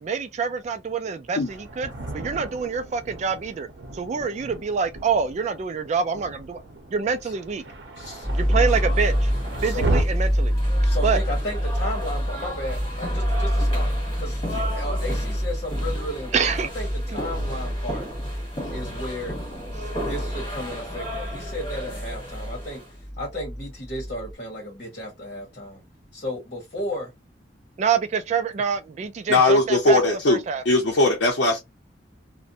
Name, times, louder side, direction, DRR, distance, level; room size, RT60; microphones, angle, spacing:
voice 1, 0.0-1.9 2.1-3.7 3.9-6.6 6.9-7.6 8.3-9.3 9.6-10.6 11.0-11.2 16.3-16.7 17.1-17.2 19.8-19.9 27.8-30.6, right 6 dB, 40° right, 0.3 m, -26 dB
Thunder, 1.4-10.0, right 2 dB, 75° right, 0.7 m, -34 dB
voice 2, 8.0-8.3 9.6-9.9 10.8-13.9 14.2-18.1 18.7-19.4 20.0-22.8 23.2-25.8 26.1-27.1, left 1 dB, 45° left, 1.0 m, -34 dB
sound 1, 8.2-22.9, equal, 25° left, 1.6 m, -36 dB
sound 2, 8.2-24.3, equal, ahead, 0.9 m, -27 dB
voice 3, 29.3-31.6, left 2 dB, 70° left, 0.6 m, -19 dB
2.5 x 2.1 x 2.7 m
head